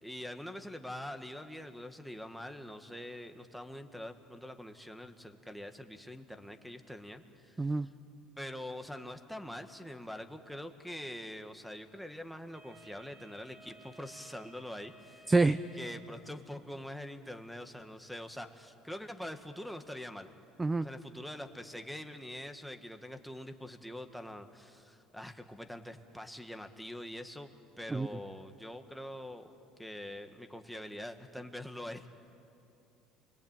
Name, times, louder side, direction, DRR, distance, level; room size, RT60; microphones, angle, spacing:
voice 1, 0.0-7.9 8.4-15.3 15.8-20.3 20.8-27.5 27.8-29.5 29.8-32.1, left 1 dB, ahead, 6 dB, 1.8 m, -44 dB
Wind instrument woodwind instrument, 12.5-16.4, right 2 dB, 40° right, 3.1 m, -58 dB
voice 2, 15.3-15.6 20.6-20.9 27.9-28.1, right 3 dB, 15° right, 12 dB, 0.6 m, -26 dB
28.5 x 22.5 x 9.1 m, 2.8 s
supercardioid pair, 105°, 0 cm